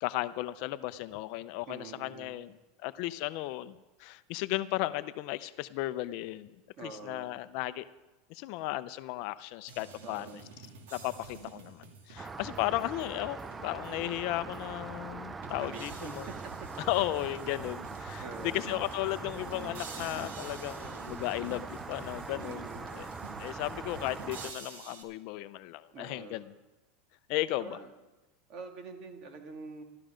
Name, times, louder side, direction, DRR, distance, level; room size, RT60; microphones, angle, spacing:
voice 1, 0.0-2.6 2.8-6.5 6.8-7.8 8.3-10.4 10.9-16.3 16.9-23.1 23.4-26.4 27.3-27.8, left 17 dB, 55° left, 14 dB, 0.6 m, -35 dB
voice 2, 1.7-2.4 6.7-7.4 10.0-10.5 15.6-16.1 16.6-16.7 18.2-18.8 22.4-22.9 25.9-26.5 27.6-27.9 28.5-29.8, right 4 dB, 40° right, 3 dB, 2.4 m, -45 dB
sound 1, 9.7-14.1 14.5-14.6 15.4-25.0, right 4 dB, 80° right, 2.7 m, -49 dB
Rain, 12.2-24.5, right 4 dB, 15° right, 0.5 m, -42 dB
14.5 x 13.0 x 5.1 m, 1.1 s
supercardioid pair, 140°, 0 cm